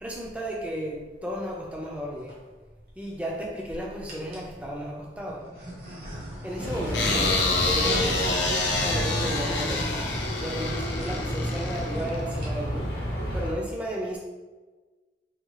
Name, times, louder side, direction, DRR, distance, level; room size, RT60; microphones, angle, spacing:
voice 1, 0.0-2.3 3.0-5.4 6.4-7.4 7.7-9.8 10.4-12.9 13.3-14.2, equal, 10° right, -3 dB, 0.4 m, -34 dB
sound 1, 2.2-2.4 3.1-3.6 4.1-4.5 5.2-10.7 11.0-11.1 11.4-11.5 11.7-12.0 12.3-12.8, equal, 55° right, 1.0 m, -41 dB
sound 2, 6.6-13.5, equal, 60° left, 0.9 m, -31 dB
sound 3, 6.9-12.2, left 3 dB, 85° left, 0.6 m, -27 dB
3.5 x 2.3 x 3.1 m, 1.3 s
head